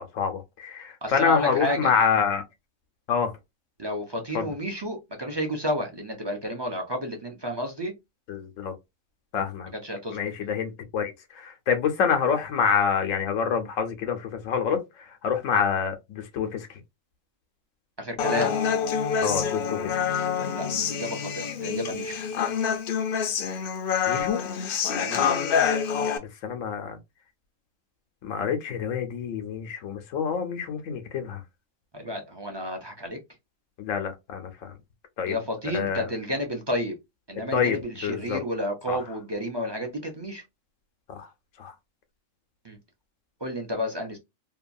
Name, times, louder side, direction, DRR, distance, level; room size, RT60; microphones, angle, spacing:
voice 1, 0.0-2.4 3.1-3.3 4.3-4.5 8.3-8.7 9.3-9.7 10.1-16.7 19.2-19.8 24.1-24.4 26.2-27.0 28.2-31.4 33.8-34.7 35.2-35.4 35.7-36.1 37.5-37.8 38.0-38.4 38.9-39.0 41.1-41.3 41.6-41.7, left 6 dB, 85° left, 1.0 m, -27 dB
voice 2, 1.0-1.9 3.8-7.9 9.7-10.2 18.0-18.6 20.6-22.2 25.0-25.3 31.9-33.2 35.3-37.0 37.3-40.4 42.6-42.8 43.4-44.2, left 1 dB, 35° right, 0.4 m, -31 dB
Human voice, 18.2-26.2, left 7 dB, 60° left, 0.6 m, -26 dB
2.8 x 2.3 x 2.5 m
omnidirectional pair, 1.3 m